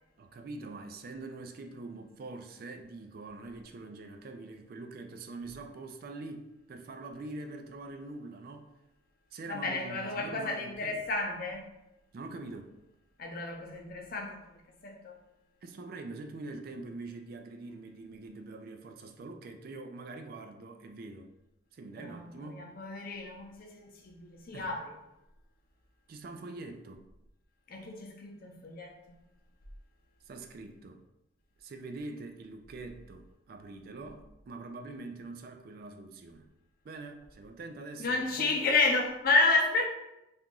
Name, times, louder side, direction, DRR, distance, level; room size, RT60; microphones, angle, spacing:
voice 1, 0.2-8.7 9.3-11.0 12.1-12.8 15.6-21.3 21.7-22.7 24.5-24.7 26.1-27.1 30.3-31.0 31.6-36.5 36.8-38.6, right 3 dB, 55° right, 6 dB, 0.3 m, -44 dB
voice 2, 9.5-11.6 13.2-15.2 22.0-24.9 27.7-29.2 38.0-39.9, left 3 dB, 55° left, 1 dB, 0.6 m, -31 dB
2.9 x 2.5 x 3.6 m, 0.90 s
head